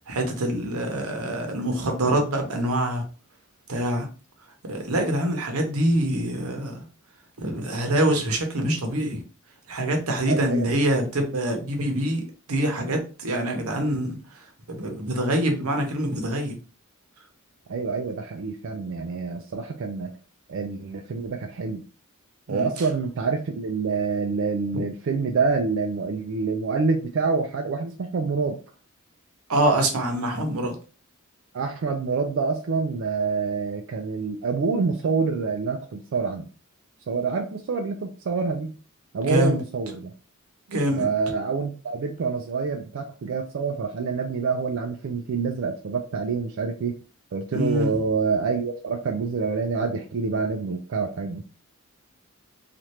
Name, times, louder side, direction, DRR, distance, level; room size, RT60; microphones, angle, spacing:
voice 1, 0.1-3.0 3.7-4.1 4.7-6.8 7.4-9.2 9.7-12.2 12.5-14.2 14.7-16.6 22.5-22.7 24.7-24.8 29.5-30.7 39.3-39.6 40.7-41.0 47.5-47.9, right 1 dB, 85° right, 4 dB, 0.8 m, -25 dB
voice 2, 10.3-10.7 17.7-20.2 20.5-21.8 22.5-28.6 31.5-36.5 37.1-38.8 39.1-40.1 41.0-47.0 47.3-51.4, right 4 dB, 60° right, 3 dB, 0.3 m, -27 dB
3.1 x 2.4 x 2.8 m, 0.36 s
head